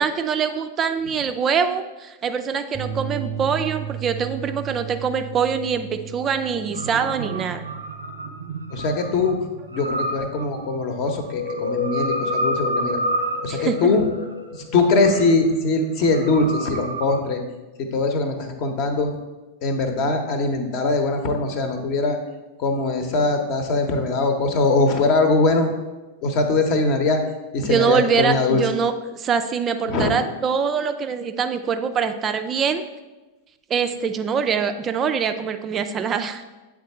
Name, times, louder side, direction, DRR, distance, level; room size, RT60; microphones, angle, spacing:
voice 1, 0.0-7.6 13.5-13.9 27.6-32.8 33.7-36.4, right 6 dB, 25° right, 8 dB, 0.3 m, -24 dB
sound 1, 2.7-11.2, right 9 dB, 5° left, 0.9 m, -36 dB
sound 2, 6.7-17.2, right 1 dB, 80° right, 0.5 m, -30 dB
voice 2, 8.7-9.4 9.7-13.0 13.4-14.1 14.7-17.4 17.8-19.1 19.6-22.2 22.6-25.7 26.2-27.2 27.5-28.7 29.9-30.1, left 3 dB, 45° left, 6 dB, 0.8 m, -21 dB
sound 3, 11.1-15.7, left 7 dB, 80° left, 0.6 m, -31 dB
7.9 x 3.6 x 4.2 m, 1.1 s
figure-of-eight pair, 90°, 0 cm